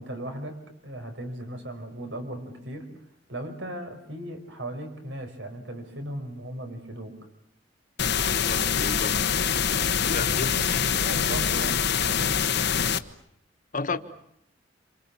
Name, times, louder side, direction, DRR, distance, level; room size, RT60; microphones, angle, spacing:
voice 1, 0.0-2.9 3.3-7.1 10.2-10.7 10.9-12.4 13.9-14.0, right 1 dB, 75° right, 6 dB, 5.6 m, -37 dB
independent pink noise, 8.0-13.0, left 7 dB, 65° left, 1.2 m, -25 dB
voice 2, 8.3-9.2 10.1-10.5 13.7-14.0, left 3 dB, 45° left, 9 dB, 1.6 m, -32 dB
28.0 x 27.5 x 7.3 m, 0.75 s
head